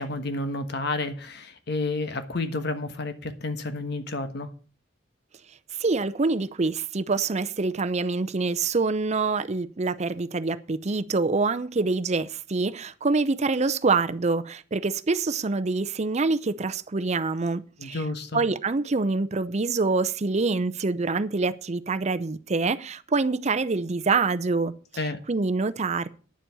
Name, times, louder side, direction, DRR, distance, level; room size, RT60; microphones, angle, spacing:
voice 1, 0.0-4.5 17.8-18.4 25.0-25.2, left 2 dB, 60° left, 1.3 m, -30 dB
voice 2, 5.8-18.0 18.3-26.1, right 3 dB, 35° right, 0.6 m, -26 dB
10.0 x 7.4 x 6.9 m
head